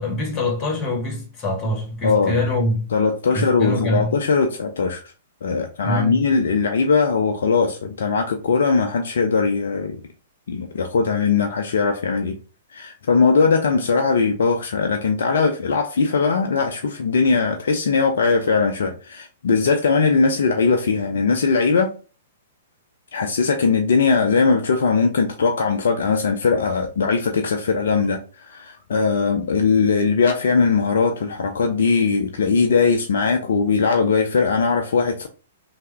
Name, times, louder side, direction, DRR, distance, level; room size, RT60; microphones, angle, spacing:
voice 1, 0.0-2.9 3.3-4.2 5.8-6.2, left 1 dB, 25° left, 1.2 m, -24 dB
voice 2, 2.0-2.4 2.9-5.0 5.4-10.0 10.5-12.4 12.7-21.9 23.1-35.3, left 4 dB, 65° left, 0.4 m, -20 dB
3.2 x 2.0 x 3.3 m
figure-of-eight pair, 110°, 0 cm